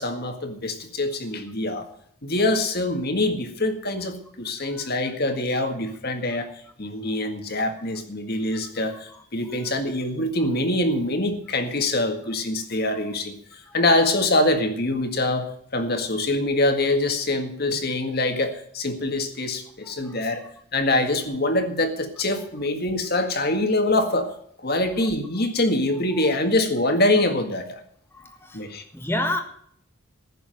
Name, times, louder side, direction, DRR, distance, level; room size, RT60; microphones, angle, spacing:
voice 1, 0.0-1.9 2.2-6.5 6.8-13.4 13.7-20.4 20.7-24.3 24.6-27.8 28.5-28.8, left 2 dB, 45° left, 6 dB, 1.9 m, -24 dB
voice 2, 28.1-28.6 28.9-29.4, left 1 dB, 10° left, 6 dB, 1.4 m, -29 dB
15.0 x 6.9 x 7.8 m, 0.66 s
head